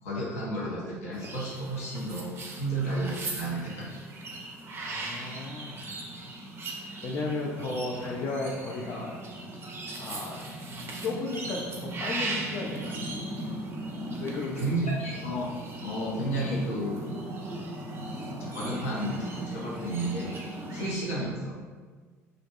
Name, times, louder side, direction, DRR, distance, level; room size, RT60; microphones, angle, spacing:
voice 1, 0.0-3.9 14.6-17.0 18.4-20.4 20.7-21.6, right 1 dB, 75° left, -5 dB, 0.7 m, -32 dB
sound 1, 1.1-20.9, right 1 dB, 30° right, 0.4 m, -38 dB
voice 2, 4.8-5.9 7.0-9.1 10.0-10.4 11.0-13.0 14.2-14.7, left 3 dB, 40° left, -3 dB, 0.4 m, -34 dB
2.5 x 2.2 x 2.6 m, 1.5 s
figure-of-eight pair, 60°, 8 cm